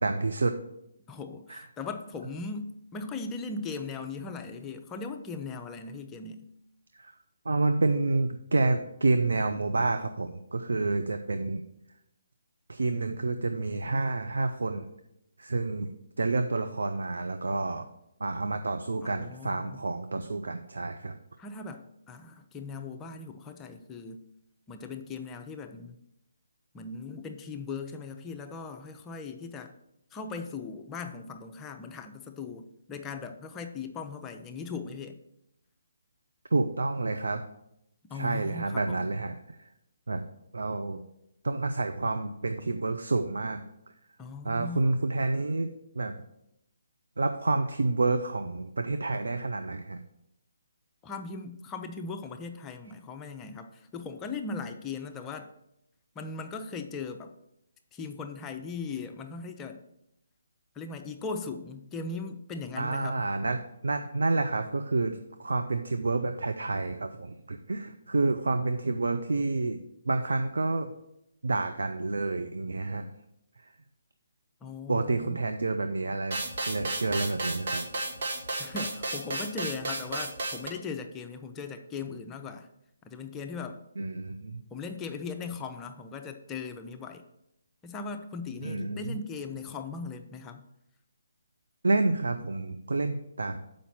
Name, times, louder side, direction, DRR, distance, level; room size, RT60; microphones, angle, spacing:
voice 1, 0.0-0.6 1.5-1.6 6.9-7.1 7.5-11.6 12.7-14.9 15.4-17.8 18.2-21.2 36.5-37.5 38.1-39.7 40.1-40.2 40.5-41.0 41.4-43.6 44.4-45.7 46.0-46.2 47.2-50.0 62.8-69.8 70.1-70.9 71.4-73.1 74.9-76.4 76.7-77.8 84.0-84.6 88.6-89.2 91.8-93.7, right 3 dB, 70° right, 7 dB, 0.5 m, -29 dB
voice 2, 1.1-6.5 19.0-19.8 21.4-24.3 24.7-26.0 26.7-29.7 30.1-35.2 38.1-39.1 44.2-45.0 51.0-55.5 56.2-57.3 57.9-59.8 60.8-63.3 74.6-75.4 78.6-82.7 83.0-83.8 84.7-87.2 87.8-90.7, left 4 dB, 15° left, 5 dB, 0.5 m, -39 dB
sound 1, 76.3-80.7, right 2 dB, 55° right, 1.6 m, -33 dB
7.0 x 5.1 x 5.9 m, 0.82 s
figure-of-eight pair, 140°, 0 cm